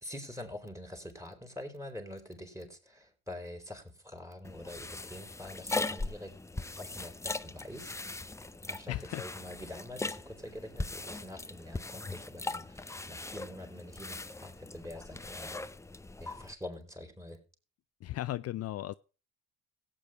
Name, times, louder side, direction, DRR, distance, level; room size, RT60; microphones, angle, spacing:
voice 1, 0.0-6.3 6.8-8.0 8.7-15.6 16.2-17.4, left 1 dB, 10° right, 4.4 m, -45 dB
sound 1, 4.4-16.5, left 2 dB, 10° left, 0.6 m, -40 dB
voice 2, 8.9-9.2 18.0-18.9, left 14 dB, 50° left, 0.5 m, -36 dB
17.0 x 8.6 x 3.0 m
supercardioid pair, 75°, 31 cm